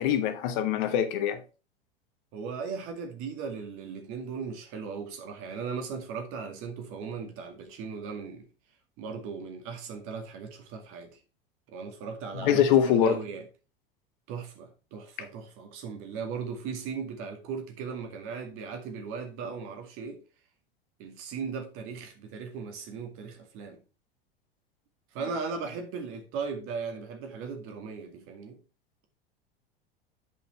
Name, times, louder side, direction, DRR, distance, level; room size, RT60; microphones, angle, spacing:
voice 1, 0.0-1.4 12.4-13.2, left 9 dB, 55° left, 1.3 m, -23 dB
voice 2, 2.3-8.5 9.0-11.2 11.7-13.4 14.3-20.2 21.0-23.8 25.1-28.6, right 5 dB, 45° right, 2.2 m, -37 dB
8.4 x 5.3 x 4.2 m
figure-of-eight pair, 80°, 29 cm